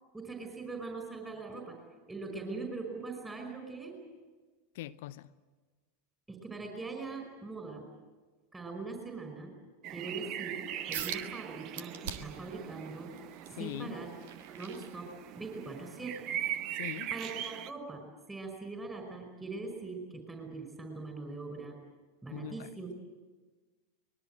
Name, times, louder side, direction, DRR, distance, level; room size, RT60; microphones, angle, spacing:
voice 1, 0.1-1.8 2.1-3.9 6.3-7.9 8.5-9.5 9.9-10.6 10.9-13.1 13.5-14.1 14.5-16.2 17.1-21.7 22.2-22.9, right 3 dB, 10° right, 5.2 m, -41 dB
voice 2, 4.7-5.3 13.5-13.9 16.7-17.1 22.3-22.7, left 14 dB, 55° left, 0.7 m, -42 dB
sound 1, 9.8-17.7, right 11 dB, 40° right, 1.0 m, -40 dB
sound 2, 10.9-11.3 11.8-12.4 12.9-15.5 16.0-16.2 16.8-16.9, right 8 dB, 55° right, 1.7 m, -42 dB
24.5 x 21.5 x 7.8 m
figure-of-eight pair, 85°, 0 cm